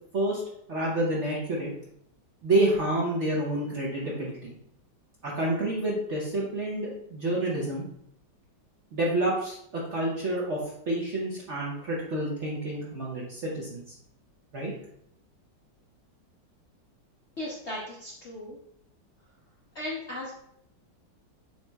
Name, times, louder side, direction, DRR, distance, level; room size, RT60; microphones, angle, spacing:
voice 1, 0.7-1.7 2.4-4.5 5.2-7.9 8.9-13.9 14.5-14.7, right 1 dB, 55° right, -4 dB, 0.8 m, -28 dB
voice 2, 17.4-18.6 19.7-20.3, left 1 dB, 60° left, -4 dB, 0.7 m, -36 dB
6.9 x 2.9 x 2.3 m, 0.73 s
omnidirectional pair, 2.0 m